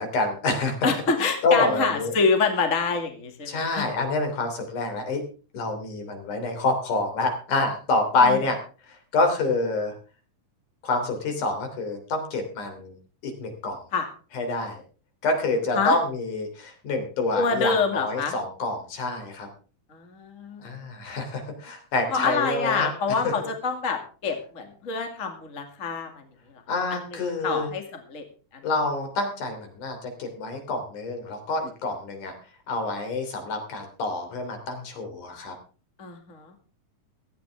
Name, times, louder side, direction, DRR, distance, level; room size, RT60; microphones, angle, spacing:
voice 1, 0.0-1.0 1.4-2.1 3.5-5.2 5.5-8.6 8.9-9.9 10.8-13.0 13.2-13.8 14.3-14.8 15.2-19.5 20.6-22.9 23.2-23.3 26.7-27.7 28.6-32.3 32.7-35.5, left 3 dB, 70° left, 5 dB, 4.6 m, -27 dB
voice 2, 0.8-3.9 8.2-8.4 13.9-14.1 15.8-16.0 17.3-18.3 19.9-20.6 22.1-26.1 26.9-27.0 27.4-27.8 28.1-28.2 28.5-28.6 36.0-36.6, left 5 dB, 25° left, 5 dB, 2.2 m, -26 dB
16.5 x 14.5 x 3.5 m, 0.37 s
omnidirectional pair, 3.7 m